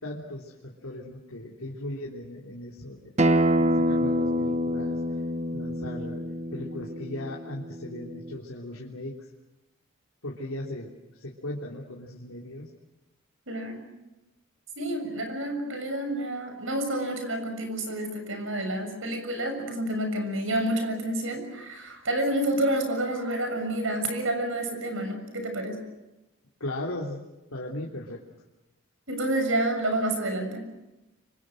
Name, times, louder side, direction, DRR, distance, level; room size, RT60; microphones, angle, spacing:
voice 1, 0.0-5.0 5.5-6.2 6.5-9.2 10.2-10.9 11.2-12.7 26.6-27.2 27.5-28.2, left 1 dB, 90° left, -2 dB, 3.3 m, -37 dB
Acoustic guitar, 3.2-8.4, equal, 30° right, 0.8 m, -26 dB
voice 2, 13.5-13.8 14.8-25.8 29.1-30.7, right 1 dB, 65° right, 6 dB, 6.9 m, -29 dB
29.5 x 25.0 x 6.5 m, 0.98 s
head